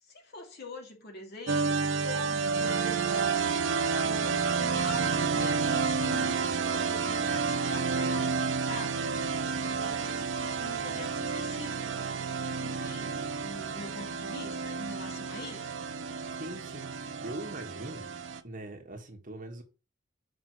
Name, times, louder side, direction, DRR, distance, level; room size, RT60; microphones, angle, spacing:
voice 1, 0.0-9.2 9.7-11.8 12.6-15.7, left 2 dB, 55° left, 2.9 m, -44 dB
sound 1, 1.5-18.4, right 5 dB, 85° right, 0.8 m, -30 dB
voice 2, 16.4-18.1 18.4-19.6, right 1 dB, 45° right, 1.6 m, -42 dB
6.0 x 5.4 x 6.6 m
head